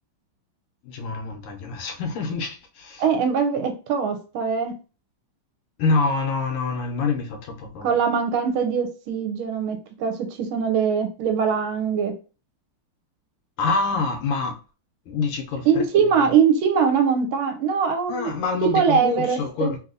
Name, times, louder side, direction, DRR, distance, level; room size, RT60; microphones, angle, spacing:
voice 1, 0.8-3.0 5.8-8.0 13.6-14.6 15.1-15.8 16.2-16.3 18.1-19.8, left 4 dB, 85° left, 1.6 m, -26 dB
voice 2, 3.0-4.7 7.8-12.1 15.7-18.3 18.6-19.7, right 6 dB, 80° right, 1.3 m, -22 dB
3.5 x 2.7 x 2.5 m
omnidirectional pair, 2.4 m